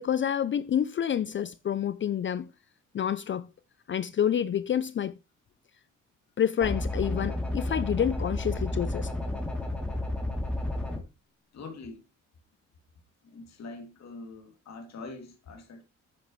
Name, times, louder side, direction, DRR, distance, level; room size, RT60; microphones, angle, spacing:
voice 1, 0.0-2.5 2.9-3.5 3.9-5.2 6.4-9.1, left 9 dB, 40° left, 0.5 m, -28 dB
sound 1, 6.6-11.0, left 1 dB, 5° left, 2.9 m, -31 dB
voice 2, 11.5-12.0 13.2-15.8, left 3 dB, 60° left, 2.7 m, -44 dB
10.0 x 8.9 x 3.2 m
cardioid pair, 90°, 30 cm